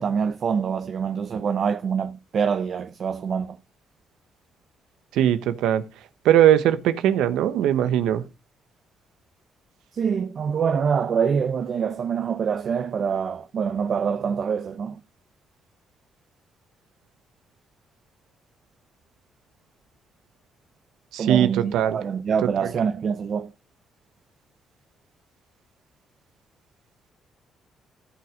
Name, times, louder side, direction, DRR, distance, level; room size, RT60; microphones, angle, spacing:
voice 1, 0.0-3.6 9.9-15.0 21.2-23.5, right 6 dB, 55° right, 0.8 m, -25 dB
voice 2, 5.1-5.8 6.2-8.2 21.1-22.0, right 11 dB, 90° right, 1.0 m, -20 dB
14.5 x 5.9 x 5.1 m
cardioid pair, 90°, 0 cm